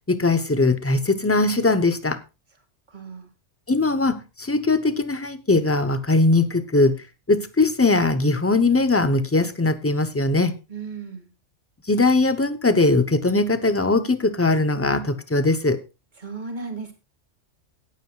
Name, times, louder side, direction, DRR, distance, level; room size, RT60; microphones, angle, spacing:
voice 1, 0.1-2.2 3.7-7.0 7.3-10.5 11.9-15.8, left 2 dB, 15° left, 0.7 m, -20 dB
voice 2, 2.9-3.3 10.7-11.3 16.2-16.9, right 4 dB, 40° right, 2.3 m, -35 dB
17.5 x 9.2 x 2.4 m
omnidirectional pair, 1.3 m